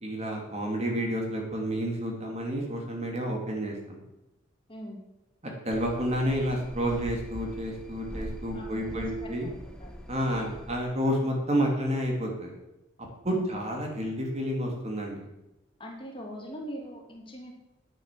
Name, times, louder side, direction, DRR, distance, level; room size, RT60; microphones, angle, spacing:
voice 1, 0.0-4.0 5.4-9.5 10.1-12.5 13.2-15.3, equal, 35° right, 1 dB, 2.6 m, -30 dB
voice 2, 4.7-5.0 8.5-10.0 13.3-13.5 15.8-17.5, equal, 25° left, 1 dB, 2.4 m, -42 dB
sound 1, 5.7-10.8, equal, 5° left, 1.2 m, -42 dB
10.5 x 9.0 x 7.4 m, 0.94 s
head